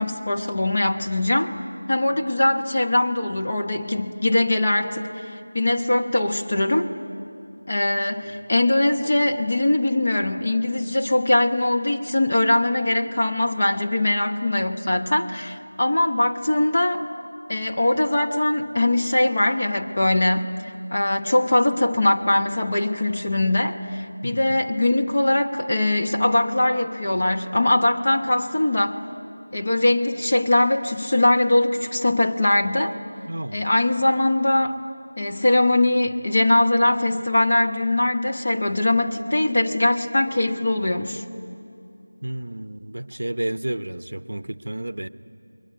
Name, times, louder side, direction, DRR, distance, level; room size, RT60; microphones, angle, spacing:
voice 1, 0.0-1.5 1.9-6.9 7.7-17.0 17.5-20.5 20.9-29.0 29.5-32.9 33.5-34.8 35.2-41.2, left 1 dB, 25° left, 2 dB, 0.9 m, -21 dB
voice 2, 24.2-24.6 33.3-33.6 42.2-45.1, right 1 dB, 55° right, 14 dB, 0.8 m, -31 dB
28.0 x 22.0 x 9.3 m, 2.7 s
figure-of-eight pair, 180°, 0 cm